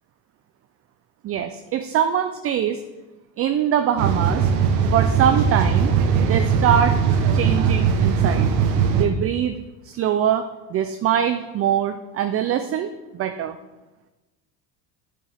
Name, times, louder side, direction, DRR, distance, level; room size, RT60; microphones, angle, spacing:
voice 1, 1.2-2.8 3.4-4.5 4.9-5.9 6.2-7.0 7.3-8.5 8.9-9.6 9.8-10.4 10.7-13.6, right 9 dB, 30° right, 8 dB, 0.4 m, -23 dB
sound 1, 4.0-9.1, right 6 dB, 85° right, 1.2 m, -19 dB
8.6 x 7.4 x 3.4 m, 1.1 s
supercardioid pair, 100°, 49 cm